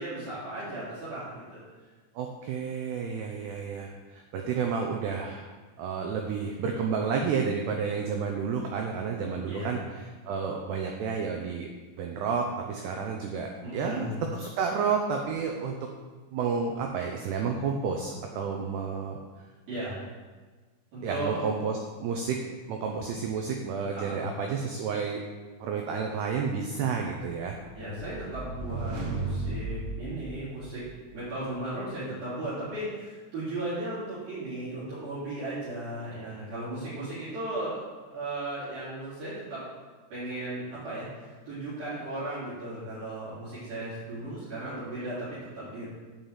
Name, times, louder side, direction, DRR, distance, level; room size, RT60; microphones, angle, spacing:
voice 1, 0.0-1.6 9.5-9.8 13.6-14.3 19.7-20.0 20.9-21.4 23.9-24.3 27.7-30.8 31.1-39.6 40.1-45.9, right 1 dB, 50° right, -12 dB, 4.7 m, -36 dB
voice 2, 2.2-5.5 5.8-11.7 11.9-15.8 16.3-19.2 21.0-22.4 22.7-25.2 25.6-27.6, right 5 dB, 90° right, 2 dB, 2.3 m, -31 dB
sound 1, 27.6-31.0, right 3 dB, 65° right, 3.8 m, -35 dB
8.7 x 5.6 x 7.4 m, 1.4 s
omnidirectional pair, 5.7 m